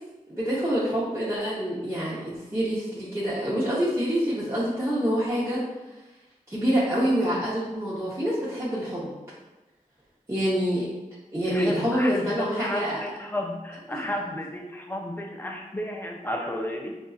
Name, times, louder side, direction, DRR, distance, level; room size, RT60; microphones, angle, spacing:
voice 1, 0.3-5.6 6.5-9.1 10.3-10.9 11.3-13.0 13.9-14.1, equal, 20° right, -10 dB, 0.9 m, -26 dB
voice 2, 11.5-16.9, left 1 dB, 15° left, 1 dB, 0.6 m, -33 dB
5.3 x 2.6 x 2.4 m, 1.1 s
wide cardioid pair, 75°, 14 cm